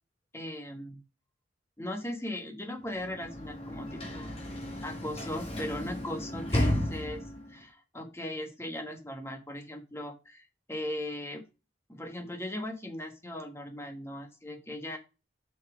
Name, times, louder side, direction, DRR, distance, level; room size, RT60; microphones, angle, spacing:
voice 1, 0.3-1.0 1.8-4.5 4.8-11.4 11.9-15.0, left 1 dB, 15° left, 5 dB, 1.3 m, -38 dB
Sliding door / Slam, 2.8-7.6, left 1 dB, 30° left, 2.6 m, -34 dB
6.6 x 5.6 x 5.0 m, 0.30 s
head